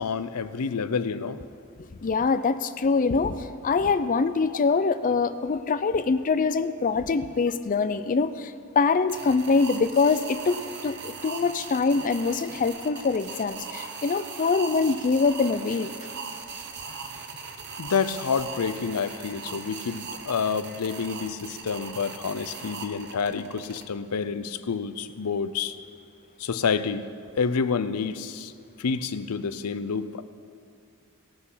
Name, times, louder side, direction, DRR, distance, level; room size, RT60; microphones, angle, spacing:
voice 1, 0.0-1.4 17.8-25.8 26.4-27.1 27.3-28.5 28.8-30.2, left 5 dB, 85° left, 13 dB, 0.6 m, -28 dB
voice 2, 2.0-15.9, left 4 dB, 35° left, 13 dB, 0.4 m, -24 dB
sound 1, 9.1-23.8, right 5 dB, 50° right, 0.9 m, -39 dB
18.5 x 6.1 x 5.7 m, 2.5 s
head